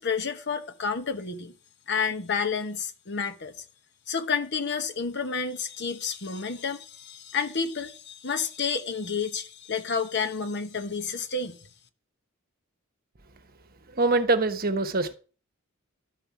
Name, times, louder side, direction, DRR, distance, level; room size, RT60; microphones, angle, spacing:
voice 1, 0.0-1.5 1.9-3.6 4.1-11.6, left 5 dB, 55° left, 1.2 m, -30 dB
voice 2, 13.9-15.1, right 3 dB, 45° right, 1.1 m, -24 dB
12.5 x 5.4 x 7.2 m
head